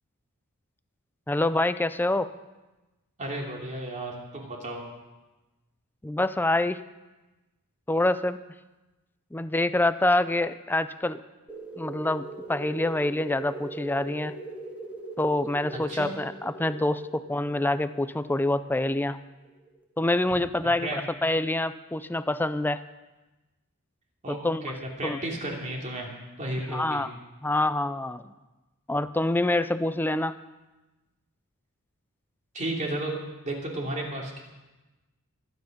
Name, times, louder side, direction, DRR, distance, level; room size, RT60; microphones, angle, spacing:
voice 1, 1.3-2.3 6.0-6.8 7.9-8.4 9.3-11.2 11.8-14.3 15.2-19.2 20.0-22.8 24.3-24.7 25.0-25.2 26.7-27.1 27.4-28.2 28.9-30.4, left 2 dB, 10° left, 13 dB, 0.5 m, -26 dB
voice 2, 3.2-4.8 15.9-16.1 20.8-21.0 24.2-26.1 26.4-27.1 32.5-33.1 33.4-34.4, right 1 dB, 35° right, -1 dB, 3.0 m, -33 dB
sound 1, 11.5-19.8, right 3 dB, 5° right, 1.8 m, -41 dB
24.0 x 9.3 x 5.3 m, 1.1 s
head